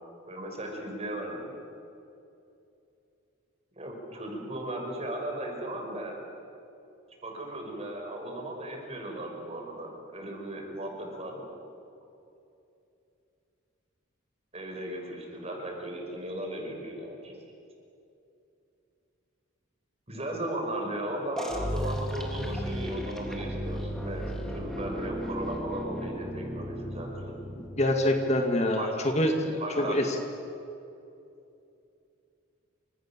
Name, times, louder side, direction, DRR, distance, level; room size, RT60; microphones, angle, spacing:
voice 1, 0.3-1.5 3.8-6.1 7.2-11.5 14.5-17.3 20.1-27.3 28.8-29.1 29.6-30.0, right 1 dB, 30° right, 1 dB, 6.2 m, -36 dB
sound 1, 21.4-28.0, equal, 5° left, 3.3 m, -35 dB
voice 2, 27.8-29.3 29.8-30.0, left 1 dB, 35° left, 3 dB, 2.2 m, -25 dB
29.0 x 26.5 x 7.6 m, 2.7 s
head